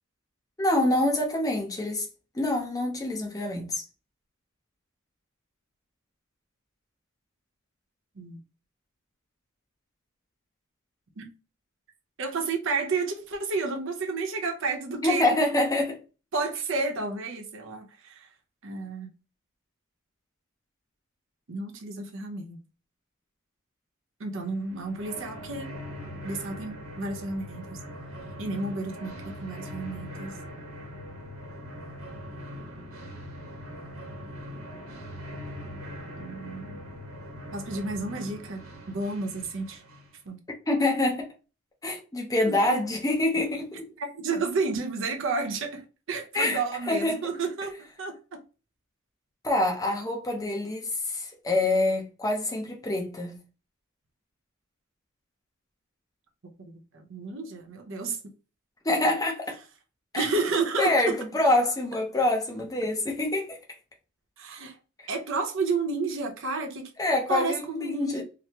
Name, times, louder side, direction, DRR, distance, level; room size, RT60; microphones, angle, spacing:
voice 1, 0.6-2.0 2.3-3.8 15.0-16.0 40.7-41.3 41.8-43.9 46.3-46.6 46.9-47.2 49.4-53.4 58.8-59.6 60.1-60.3 60.8-63.6 67.0-68.2, left 2 dB, 15° left, 0.7 m, -26 dB
voice 2, 12.2-15.3 16.3-18.3 18.6-19.1 21.5-22.6 24.2-25.7 26.2-27.8 28.4-30.3 36.2-36.8 37.5-39.8 40.3-40.4 42.5-42.8 44.0-45.8 46.1-47.7 48.0-48.4 56.4-58.2 60.2-61.2 64.4-64.8 65.1-66.9 67.3-68.2, right 3 dB, 65° right, 0.7 m, -31 dB
sound 1, 24.4-40.2, equal, 90° right, 0.9 m, -41 dB
3.3 x 2.0 x 2.9 m
head